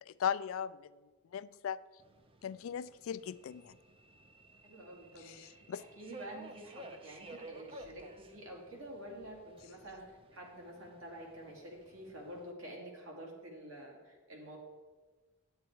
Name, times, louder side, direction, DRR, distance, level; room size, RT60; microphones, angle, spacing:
voice 1, 0.1-0.9 1.3-1.8 2.4-3.8 5.2-5.8, left 8 dB, 70° left, 16 dB, 0.3 m, -38 dB
Subway metro underground, 2.0-12.5, right 1 dB, 25° right, 0.5 m, -55 dB
voice 2, 4.6-14.6, right 1 dB, 70° right, -1 dB, 2.4 m, -49 dB
9.7 x 8.6 x 4.6 m, 1.4 s
head